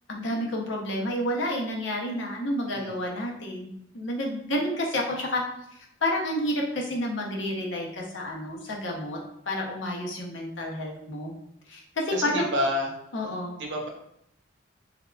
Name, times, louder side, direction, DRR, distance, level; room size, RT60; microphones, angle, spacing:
voice 1, 0.1-5.4 5.7-11.3 11.7-12.4 13.1-13.6, left 1 dB, 80° left, -1 dB, 0.8 m, -30 dB
voice 2, 2.7-3.0 12.1-12.9 13.6-13.9, left 1 dB, 75° right, 1 dB, 0.8 m, -29 dB
3.6 x 3.3 x 2.4 m, 0.76 s
head